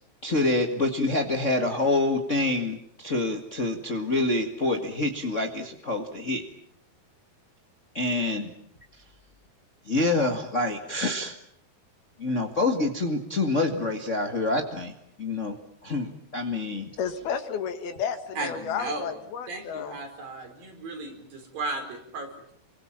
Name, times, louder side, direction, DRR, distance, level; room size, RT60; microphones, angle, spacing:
voice 1, 0.2-6.4 7.9-8.5 9.9-11.3 12.2-14.9 15.2-15.6 15.8-16.9, left 2 dB, 55° left, 3 dB, 0.8 m, -26 dB
voice 2, 17.0-19.9, left 7 dB, 70° left, 9 dB, 3.6 m, -32 dB
voice 3, 18.4-19.1 19.5-22.5, right 2 dB, 60° right, 4 dB, 6.2 m, -35 dB
28.5 x 25.0 x 7.4 m, 0.68 s
omnidirectional pair, 4.7 m